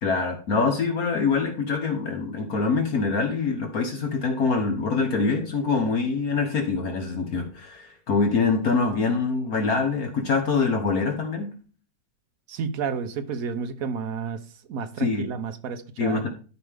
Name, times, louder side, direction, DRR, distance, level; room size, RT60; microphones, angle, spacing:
voice 1, 0.0-11.5 15.0-15.2 16.0-16.3, left 4 dB, 55° left, 1.5 m, -24 dB
voice 2, 12.5-14.4 14.7-16.2, right 6 dB, 60° right, 1.1 m, -31 dB
12.0 x 5.2 x 3.5 m
omnidirectional pair, 2.0 m